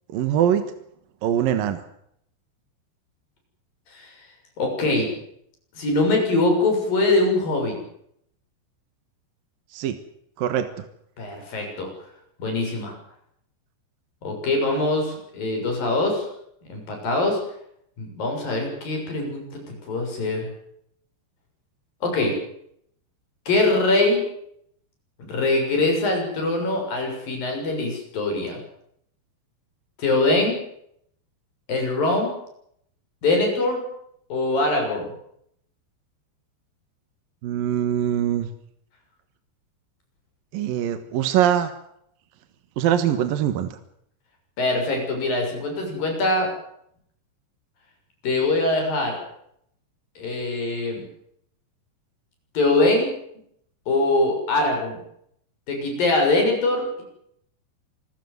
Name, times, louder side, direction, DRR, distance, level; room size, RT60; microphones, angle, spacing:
voice 1, 0.1-0.7 1.2-1.8 9.7-10.0 10.4-10.8 37.4-38.5 40.5-41.7 42.8-43.8, right 10 dB, 65° right, 10 dB, 2.7 m, -22 dB
voice 2, 4.6-5.1 5.7-7.8 11.2-11.9 12.4-12.9 14.2-16.2 16.7-17.4 18.0-19.6 19.9-20.5 22.0-22.3 23.5-24.2 25.2-28.6 30.0-30.6 31.7-32.3 33.2-33.8 34.3-35.1 44.6-46.5 48.2-49.2 50.2-51.0 52.5-53.1 53.9-55.0 55.7-57.0, left 2 dB, 50° left, 2 dB, 8.5 m, -23 dB
25.5 x 15.5 x 9.5 m, 0.72 s
omnidirectional pair, 5.0 m